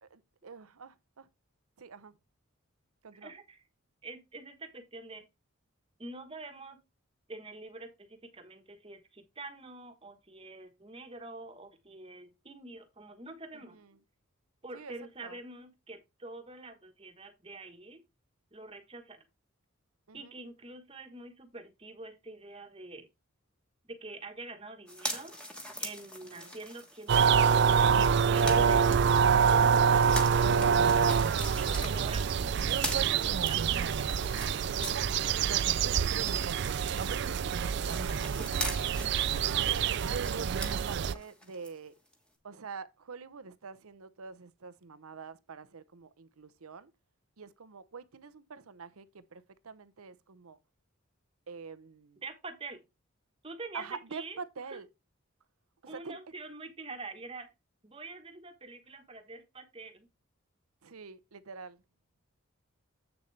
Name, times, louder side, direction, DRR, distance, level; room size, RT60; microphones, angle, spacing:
voice 1, 0.0-1.3 1.8-2.1 3.0-3.3 13.5-13.9 14.7-14.9 15.2-15.4 20.1-20.4 26.1-26.6 37.8-38.2 39.2-41.9 42.4-46.9 47.4-50.6 51.5-52.2 53.7-54.9 55.8-56.2 60.8-61.8, right 5 dB, 85° right, 0.7 m, -46 dB
voice 2, 3.1-3.6 4.0-5.2 6.0-6.8 7.3-13.8 14.6-18.0 18.5-19.2 20.1-23.1 23.8-25.4 25.8-30.9 31.5-33.2 33.5-37.3 52.2-52.8 53.4-54.4 54.7-54.8 55.8-57.5 57.8-60.1, right 2 dB, 25° right, 1.2 m, -46 dB
sound 1, 24.9-35.6 35.9-41.7 42.1-42.2, equal, 5° left, 1.3 m, -42 dB
sound 2, 27.1-41.1, right 6 dB, 55° right, 0.3 m, -26 dB
8.1 x 6.8 x 3.2 m
head